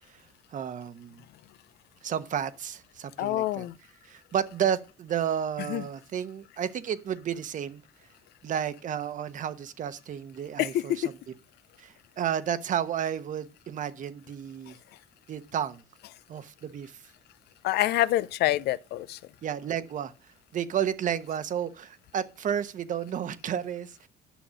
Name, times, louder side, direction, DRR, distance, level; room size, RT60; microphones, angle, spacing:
voice 1, 0.5-1.2 2.0-3.6 4.0-7.8 8.4-11.0 11.8-14.8 15.3-15.8 16.3-17.0 19.4-20.1 20.5-24.1, right 9 dB, 50° right, 1.0 m, -32 dB
voice 2, 3.2-3.7 5.7-5.8 10.6-11.1 17.6-19.2, left 14 dB, 75° left, 0.6 m, -26 dB
10.0 x 6.2 x 6.3 m
cardioid pair, 110°, 17 cm